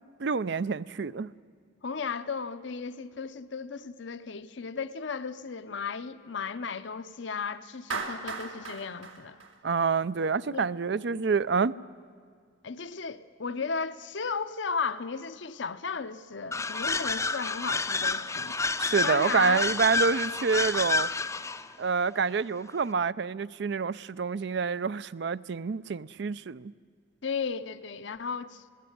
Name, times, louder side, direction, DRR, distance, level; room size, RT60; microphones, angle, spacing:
voice 1, 0.2-1.3 9.6-11.7 18.8-21.1 21.8-26.7, right 5 dB, 60° right, 0.5 m, -27 dB
voice 2, 1.8-9.4 10.5-10.7 12.6-18.6 19.0-19.7 27.2-28.7, left 5 dB, 65° left, 0.7 m, -35 dB
Clapping, 7.9-10.2, right 4 dB, 85° right, 2.5 m, -37 dB
sound 1, 16.5-21.7, left 3 dB, 15° left, 0.5 m, -29 dB
20.0 x 16.5 x 9.3 m
head